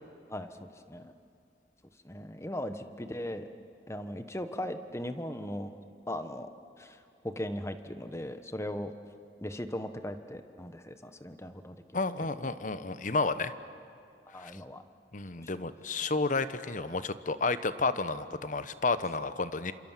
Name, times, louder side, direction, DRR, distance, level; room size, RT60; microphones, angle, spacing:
voice 1, 0.3-1.1 2.0-3.5 3.9-5.8 6.1-6.5 6.8-7.0 7.2-8.9 9.4-12.4 14.3-14.8, left 1 dB, 15° left, 9 dB, 1.2 m, -38 dB
voice 2, 11.9-13.5 14.4-14.5 15.1-19.7, left 3 dB, 45° left, 13 dB, 1.0 m, -31 dB
28.5 x 27.0 x 7.5 m, 2.5 s
head